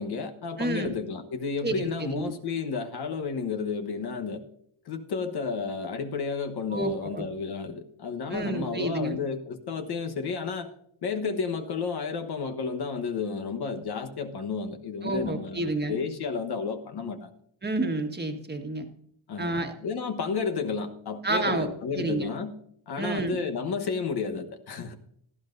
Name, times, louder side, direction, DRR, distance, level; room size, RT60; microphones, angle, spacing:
voice 1, 0.0-4.4 4.8-10.7 11.0-17.3 19.3-22.5 22.9-24.9, left 5 dB, 50° left, 5 dB, 1.2 m, -32 dB
voice 2, 0.6-1.0 1.6-2.3 6.7-7.3 8.3-9.2 15.0-16.0 17.6-18.9 19.4-19.7 21.2-22.3 23.0-23.4, right 2 dB, 20° right, 4 dB, 1.6 m, -30 dB
17.5 x 13.0 x 2.6 m, 0.70 s
cardioid pair, 135°, 49 cm